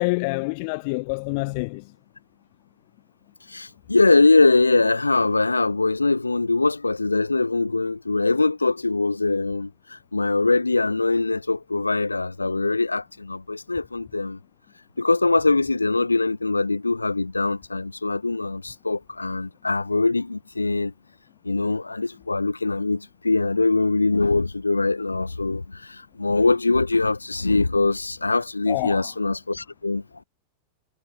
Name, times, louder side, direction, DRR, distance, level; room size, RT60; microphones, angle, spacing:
voice 1, 0.0-1.9 28.7-29.1, left 31 dB, 45° left, 0.7 m, -26 dB
voice 2, 3.5-14.4 15.0-20.9 21.4-30.0, left 3 dB, 80° left, 1.3 m, -22 dB
figure-of-eight pair, 90°, 0 cm